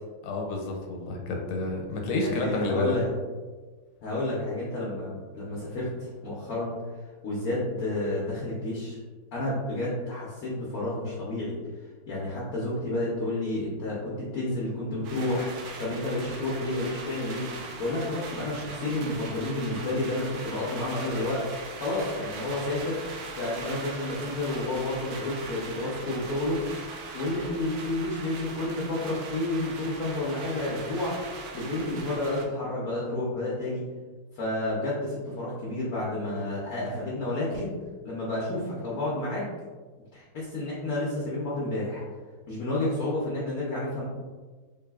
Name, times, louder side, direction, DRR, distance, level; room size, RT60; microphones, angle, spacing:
voice 1, 0.2-2.9, left 2 dB, 85° left, 1 dB, 1.5 m, -29 dB
voice 2, 2.1-3.1 4.0-6.7 7.2-9.0 9.3-11.5 12.1-17.5 17.8-21.4 21.8-23.0 23.4-26.6 27.1-31.3 31.5-33.9 34.3-37.8 38.0-39.5 40.1-42.0 42.5-44.0, left 2 dB, 65° left, -6 dB, 0.8 m, -30 dB
sound 1, 15.0-32.5, right 3 dB, 75° right, 1.3 m, -40 dB
3.7 x 3.3 x 2.3 m, 1.4 s
omnidirectional pair, 2.3 m